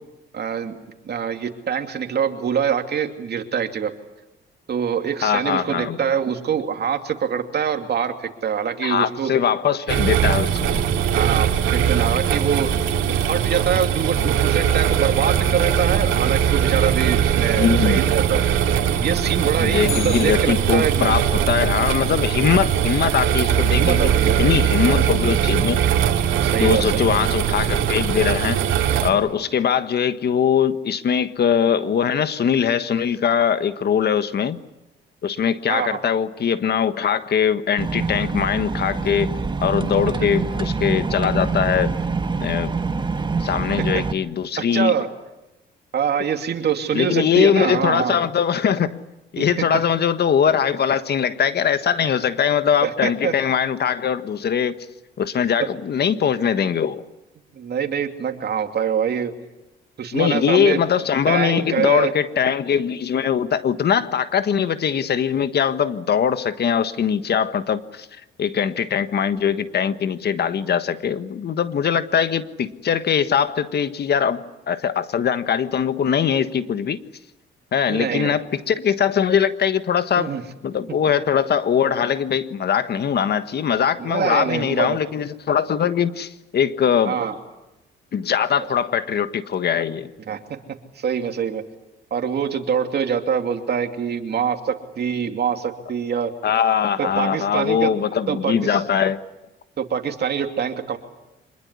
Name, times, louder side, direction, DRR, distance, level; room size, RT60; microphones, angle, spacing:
voice 1, 0.3-0.8 1.0-3.9 4.7-9.3 11.1-12.7 13.3-18.4 19.0-21.1 23.7-24.6 26.4-27.2 35.7-36.0 43.9-44.0 44.6-45.1 45.9-48.2 49.4-49.6 52.8-53.3 55.6-55.7 57.5-59.3 60.0-60.8 61.3-62.1 77.9-78.4 80.2-80.4 84.0-85.0 87.0-87.3 90.3-90.4 91.0-91.6 92.1-96.3 97.0-97.9 98.3-98.8 99.8-101.0, right 7 dB, 55° right, 6 dB, 2.8 m, -24 dB
voice 2, 5.2-6.0 8.8-10.9 17.6-18.1 19.6-24.1 24.4-25.8 26.6-28.6 29.0-34.6 35.2-39.3 39.6-41.9 42.4-42.7 43.4-44.9 46.9-49.0 49.3-54.8 55.2-57.0 60.1-68.1 68.4-77.0 77.7-80.3 80.6-87.2 88.1-90.1 96.4-99.2, left 8 dB, 55° left, 12 dB, 1.5 m, -21 dB
sound 1, 9.9-29.1, right 9 dB, 80° right, 2.6 m, -20 dB
Bicycle, 19.8-21.2 29.5-29.6, left 8 dB, 85° left, 6.9 m, -35 dB
sound 2, 37.8-44.1, right 4 dB, 25° right, 1.5 m, -25 dB
26.0 x 21.0 x 9.8 m, 0.99 s
cardioid pair, 90°, 20 cm